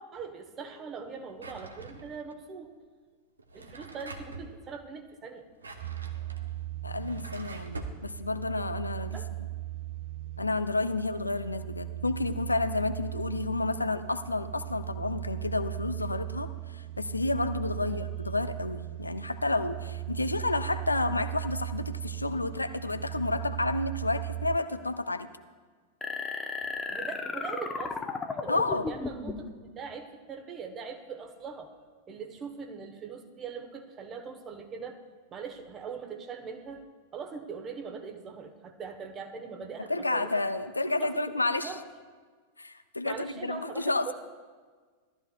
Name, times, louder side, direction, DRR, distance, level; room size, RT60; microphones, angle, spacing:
voice 1, 0.0-2.7 3.5-5.5 9.1-9.3 17.8-18.1 26.9-31.7 32.1-35.0 35.3-36.8 37.1-40.4 41.0-41.2 41.6-41.8 43.0-44.1, right 5 dB, 25° right, 5 dB, 1.1 m, -41 dB
Drawer open or close, 1.4-2.3 3.4-4.5 5.4-8.0, right 3 dB, 75° right, 0.8 m, -44 dB
sound 1, 5.8-24.6, right 15 dB, 55° right, 0.4 m, -38 dB
voice 2, 6.8-9.2 10.4-25.3 28.5-28.9 39.9-41.7 42.6-44.0, left 2 dB, 80° left, 10 dB, 0.5 m, -30 dB
sound 2, 26.0-29.5, left 4 dB, 15° left, 0.9 m, -35 dB
17.0 x 13.0 x 2.4 m, 1.5 s
figure-of-eight pair, 90°, 0 cm